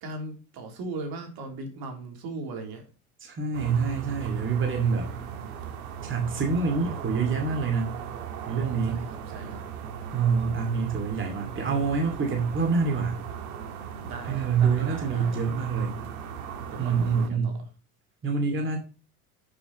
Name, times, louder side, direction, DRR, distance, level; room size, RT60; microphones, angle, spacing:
voice 1, 0.0-2.8 8.9-9.6 14.0-15.5 16.7-17.7, right 2 dB, 55° right, 4 dB, 3.3 m, -38 dB
voice 2, 3.2-5.1 6.0-7.9 8.5-9.0 10.1-13.2 14.2-16.0 16.8-17.6 18.2-18.8, right 5 dB, 25° right, 3 dB, 2.4 m, -26 dB
sound 1, 3.5-17.3, right 8 dB, 70° right, 1.8 m, -38 dB
11.0 x 7.0 x 3.0 m, 0.35 s
hypercardioid pair, 80°, 45 cm